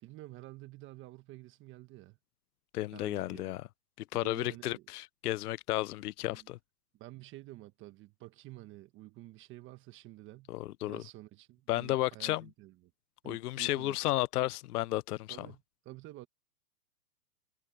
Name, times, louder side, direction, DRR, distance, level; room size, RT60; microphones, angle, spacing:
voice 1, 0.0-2.2 2.9-3.6 4.1-4.9 6.3-6.5 6.9-10.5 10.9-12.9 13.2-14.1 15.3-16.3, right 17 dB, 25° right, 1.4 m, -50 dB
voice 2, 2.7-3.6 4.1-6.6 10.5-11.0 11.7-12.4 13.2-15.5, left 16 dB, 65° left, 0.6 m, -33 dB
hypercardioid pair, 140°, 49 cm